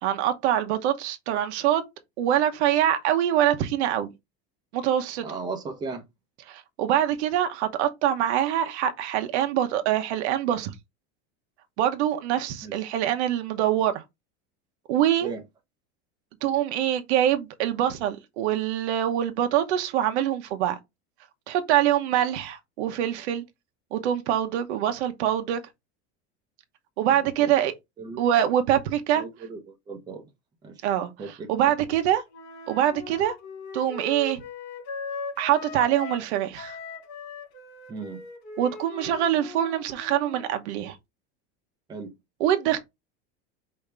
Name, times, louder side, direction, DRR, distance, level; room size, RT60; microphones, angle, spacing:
voice 1, 0.0-1.8 2.2-4.1 4.7-5.2 6.5-10.7 11.8-14.0 14.9-15.3 16.4-20.8 21.5-23.4 23.9-25.6 27.0-27.7 28.2-29.2 30.8-31.1 31.5-32.2 32.7-33.3 33.7-34.4 35.4-36.8 38.6-40.9 42.4-42.8, right 11 dB, 85° right, 1.0 m, -24 dB
voice 2, 5.2-6.0 12.6-12.8 15.2-15.4 27.1-27.5 28.0-28.2 29.1-30.2 30.6-30.9 31.2-31.7 37.9-38.2 41.9-42.1, right 4 dB, 10° right, 0.7 m, -37 dB
Wind instrument woodwind instrument, 32.3-36.3 36.5-40.5, left 4 dB, 70° left, 2.6 m, -39 dB
5.3 x 2.8 x 3.3 m
cardioid pair, 175°, 33 cm